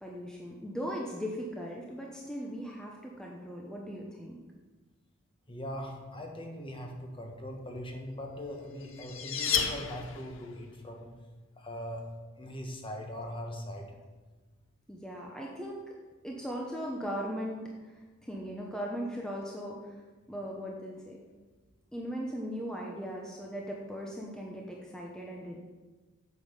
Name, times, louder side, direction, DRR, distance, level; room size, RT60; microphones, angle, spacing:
voice 1, 0.0-4.4 14.9-15.8 16.2-20.0 20.3-21.2 21.9-25.6, equal, 5° left, -2 dB, 0.9 m, -38 dB
voice 2, 5.5-11.1 11.6-12.0 12.4-13.9, equal, 25° left, 2 dB, 1.4 m, -40 dB
sound 1, 8.5-10.5, left 7 dB, 70° left, 0.8 m, -32 dB
8.4 x 7.2 x 5.6 m, 1.3 s
head